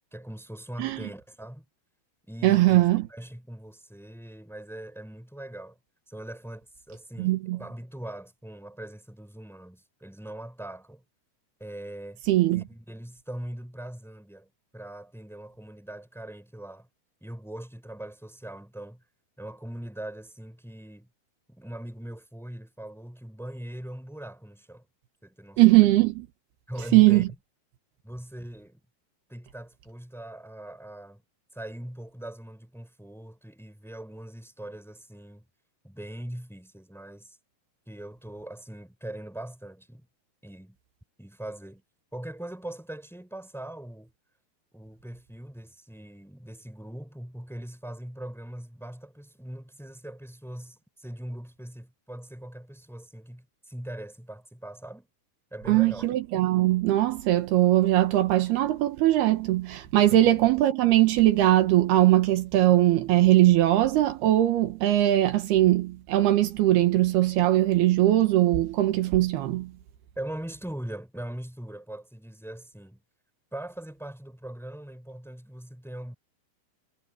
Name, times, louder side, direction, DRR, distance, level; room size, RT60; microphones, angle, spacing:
voice 1, 0.1-1.6 2.2-2.8 3.1-5.8 6.1-11.0 11.6-12.2 12.5-16.9 17.2-19.0 19.4-21.1 21.5-24.9 25.2-25.6 26.7-27.2 28.0-28.8 29.3-31.2 31.5-35.4 35.8-37.4 37.9-40.1 40.4-40.8 41.2-41.8 42.1-44.1 44.7-55.1 55.5-56.1 60.1-60.3 70.2-73.0 73.5-76.1, right 1 dB, ahead, 4.5 m, -41 dB
voice 2, 2.4-3.0 7.2-7.6 12.3-12.6 25.6-26.3 26.9-27.3 55.7-69.7, right 15 dB, 75° right, 3.2 m, -21 dB
omnidirectional pair, 4.6 m